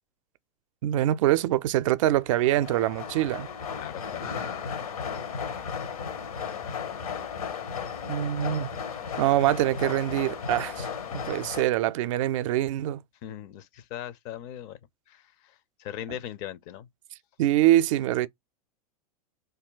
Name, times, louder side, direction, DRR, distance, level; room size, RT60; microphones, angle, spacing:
voice 1, 0.8-3.5 8.1-8.7 9.2-13.0 17.4-18.3, right 14 dB, 60° right, 0.4 m, -24 dB
sound 1, 2.3-11.6, left 6 dB, 75° left, 0.9 m, -35 dB
voice 2, 3.7-4.5 13.2-14.8 15.1-16.9, left 11 dB, 45° left, 0.5 m, -40 dB
2.6 x 2.2 x 3.8 m
hypercardioid pair, 95°, 19 cm